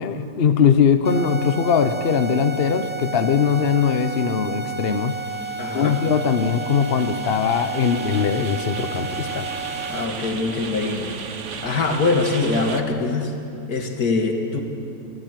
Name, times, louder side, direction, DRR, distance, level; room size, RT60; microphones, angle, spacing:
voice 1, 0.0-5.2 5.7-9.5, left 6 dB, 45° left, 9 dB, 1.0 m, -20 dB
sound 1, 1.0-10.1, right 4 dB, 15° left, 0.8 m, -32 dB
sound 2, 4.8-12.8, right 5 dB, 55° right, 1.3 m, -36 dB
voice 2, 5.6-6.0 9.9-11.1 11.6-13.3 13.7-14.6, left 3 dB, 80° left, 4 dB, 2.5 m, -23 dB
29.5 x 12.0 x 9.2 m, 2.6 s
omnidirectional pair, 1.6 m